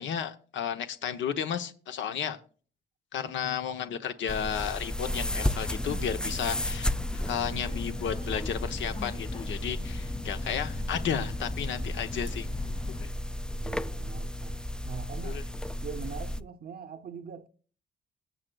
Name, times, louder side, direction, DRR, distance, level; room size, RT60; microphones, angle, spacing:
voice 1, 0.0-2.4 3.1-12.5 13.0-13.1 15.2-15.4, left 8 dB, 75° left, 0.8 m, -33 dB
sound 1, 4.3-16.4, left 1 dB, 5° left, 0.3 m, -34 dB
Subway metro underground, 5.1-13.1, left 2 dB, 30° left, 2.0 m, -39 dB
voice 2, 13.6-15.4 15.8-17.5, right 6 dB, 50° right, 0.6 m, -42 dB
20.5 x 7.7 x 2.3 m
cardioid pair, 90°, 20 cm